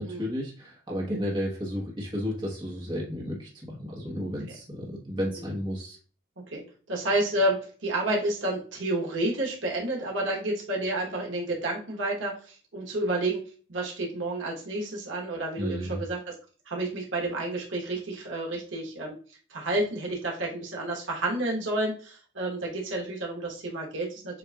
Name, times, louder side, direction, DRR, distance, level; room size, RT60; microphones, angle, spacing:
voice 1, 0.0-6.0 15.6-16.1, equal, 25° right, -3 dB, 1.1 m, -33 dB
voice 2, 6.9-13.4 13.7-16.2 16.7-19.2 19.5-24.4, right 1 dB, 80° right, -1 dB, 1.1 m, -30 dB
7.5 x 2.5 x 2.3 m, 0.40 s
head